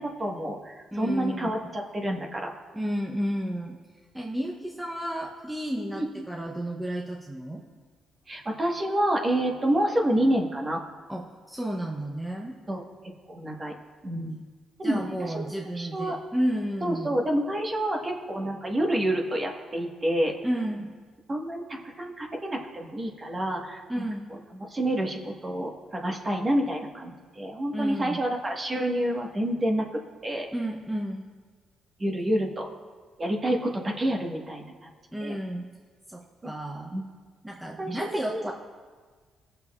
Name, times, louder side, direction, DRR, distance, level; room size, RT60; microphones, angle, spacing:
voice 1, 0.0-2.5 5.9-6.0 8.3-10.8 12.7-12.8 13.3-13.7 14.0-14.4 14.8-15.5 15.7-16.2 16.8-20.3 21.3-23.8 24.7-29.8 30.2-30.5 32.0-32.7 33.2-34.9 35.2-35.4 36.4-36.5 36.9-37.0 37.8-38.0 38.3-38.5, right 1 dB, 30° right, 0 dB, 1.4 m, -28 dB
voice 2, 0.9-1.7 2.7-3.8 4.1-7.6 11.1-12.6 14.8-17.1 20.4-20.9 23.9-24.4 27.7-28.2 30.5-31.3 35.1-35.7 36.1-37.0 37.4-38.5, equal, 5° right, -1 dB, 0.7 m, -32 dB
17.5 x 6.8 x 2.4 m, 1.5 s
cardioid pair, 90°, 0 cm